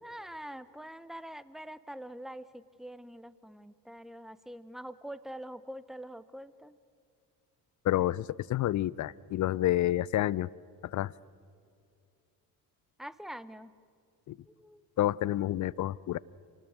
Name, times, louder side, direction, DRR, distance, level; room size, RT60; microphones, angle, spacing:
voice 1, 0.0-6.8 13.0-13.7 14.5-14.9, right 1 dB, ahead, 15 dB, 0.9 m, -45 dB
voice 2, 7.8-10.5 10.8-11.1 14.3-14.4 15.0-16.2, left 14 dB, 40° left, 23 dB, 0.5 m, -29 dB
27.5 x 19.0 x 6.6 m, 2.3 s
figure-of-eight pair, 50°, 50 cm